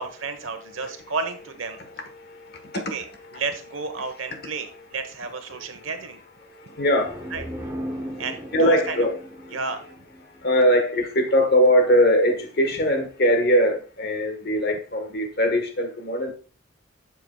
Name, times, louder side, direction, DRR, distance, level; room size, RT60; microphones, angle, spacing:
voice 1, 0.0-1.8 2.7-3.0 3.3-6.2 7.3-7.4 8.2-9.1 9.5-9.8, right 4 dB, 75° right, 1.0 m, -32 dB
voice 2, 0.5-0.8 1.7-3.4 5.5-5.9 6.4-7.4 7.9-8.2 8.5-9.1 9.4-9.6 10.4-16.3, equal, 50° left, 1.2 m, -22 dB
sound 1, 7.0-10.7, equal, 15° right, 0.9 m, -36 dB
7.9 x 6.8 x 2.3 m
head